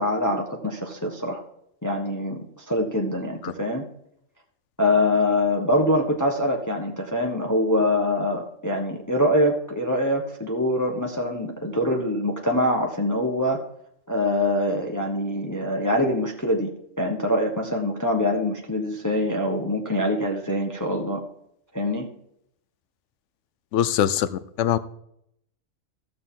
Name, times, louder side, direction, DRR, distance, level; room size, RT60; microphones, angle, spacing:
voice 1, 0.0-1.4 1.8-3.8 4.8-13.6 14.1-16.7 17.0-21.2 21.7-22.1, left 1 dB, 15° left, 1 dB, 1.1 m, -24 dB
voice 2, 23.7-24.8, left 10 dB, 65° left, 15 dB, 0.9 m, -23 dB
15.0 x 6.6 x 3.8 m, 0.73 s
omnidirectional pair, 1.4 m